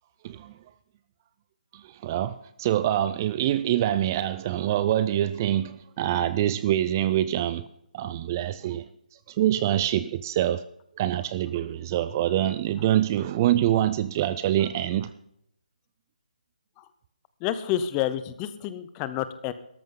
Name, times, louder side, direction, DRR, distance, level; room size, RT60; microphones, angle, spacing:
voice 1, 0.2-0.5 1.7-7.7 7.9-8.8 9.3-10.7 11.0-15.1, right 12 dB, 25° right, 0.4 m, -25 dB
voice 2, 17.4-19.5, left 11 dB, 15° left, 0.7 m, -29 dB
17.0 x 13.5 x 3.8 m
hypercardioid pair, 160°, 5 cm